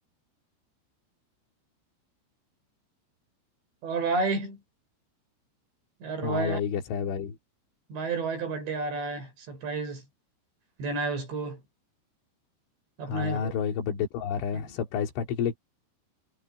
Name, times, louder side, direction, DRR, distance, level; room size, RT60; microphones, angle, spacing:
voice 1, 3.8-4.6 6.0-6.6 7.9-10.0 10.8-11.6 13.0-13.5 14.5-14.7, right 4 dB, 70° right, 9.2 m, -31 dB
voice 2, 6.2-7.4 13.1-15.6, left 7 dB, 80° left, 5.3 m, -30 dB
omnidirectional pair, 5.4 m